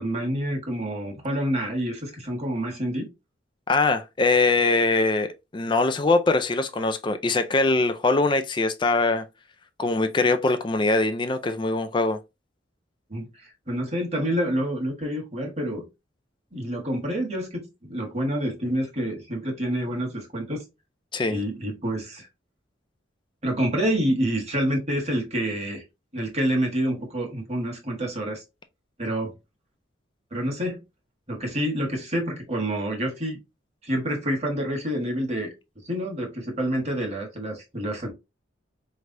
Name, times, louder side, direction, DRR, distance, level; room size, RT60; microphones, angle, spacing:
voice 1, 0.0-3.1 13.1-15.8 16.5-20.6 21.3-22.3 23.4-25.8 26.1-28.4 29.0-29.3 30.3-30.8 31.3-33.4 33.8-35.5 35.8-38.1, equal, 35° right, 1.5 m, -28 dB
voice 2, 3.7-9.3 9.8-12.2 21.1-21.4, left 3 dB, 25° left, 0.4 m, -22 dB
4.7 x 3.2 x 2.6 m
head